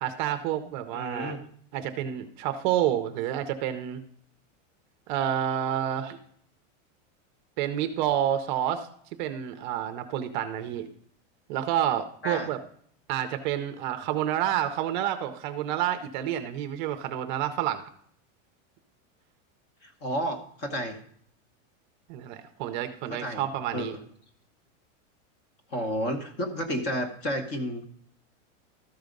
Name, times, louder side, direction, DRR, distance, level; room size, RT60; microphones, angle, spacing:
voice 1, 0.0-1.4 1.7-4.0 5.1-6.2 7.6-8.9 9.2-10.9 11.5-12.6 13.1-17.8 22.1-23.9, right 11 dB, 40° right, 8 dB, 0.6 m, -29 dB
voice 2, 0.9-1.4 12.2-12.5 19.8-21.0 23.1-23.5 23.7-24.0 25.7-27.9, equal, 30° left, 6 dB, 1.0 m, -31 dB
13.0 x 4.7 x 5.2 m, 0.63 s
supercardioid pair, 170°, 38 cm